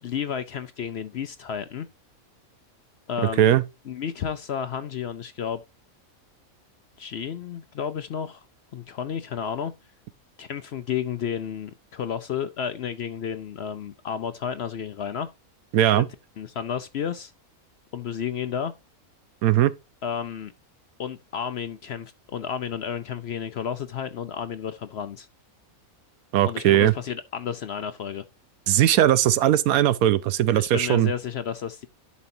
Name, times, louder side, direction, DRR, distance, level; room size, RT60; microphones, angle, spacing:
voice 1, 0.0-1.9 3.1-3.6 3.9-5.6 7.0-8.4 8.7-9.7 10.4-15.3 15.9-16.0 16.4-17.3 17.9-18.7 20.0-20.5 21.0-25.3 26.4-28.2 30.5-31.9, left 8 dB, 60° left, 0.7 m, -32 dB
voice 2, 15.7-16.1 19.4-19.7 26.3-26.9 28.7-31.1, right 12 dB, 80° right, 1.1 m, -19 dB
11.5 x 5.3 x 2.7 m
omnidirectional pair, 1.5 m